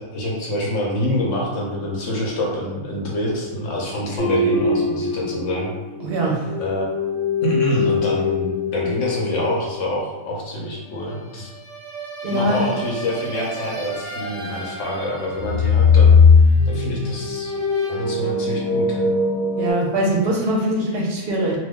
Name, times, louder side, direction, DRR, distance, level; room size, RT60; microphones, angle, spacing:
voice 1, 0.0-5.7 6.6-7.0 7.4-11.5 12.3-16.2 16.7-17.5 17.9-19.1, left 1 dB, 65° left, -3 dB, 1.1 m, -26 dB
sound 1, 4.2-6.1 6.4-10.2 11.8-15.1 15.4-19.7, left 4 dB, 30° left, 1.0 m, -20 dB
voice 2, 6.0-6.5 12.2-12.7 19.6-21.6, right 1 dB, 55° right, -2 dB, 0.7 m, -22 dB
3.0 x 2.3 x 3.5 m, 1.2 s
omnidirectional pair, 1.5 m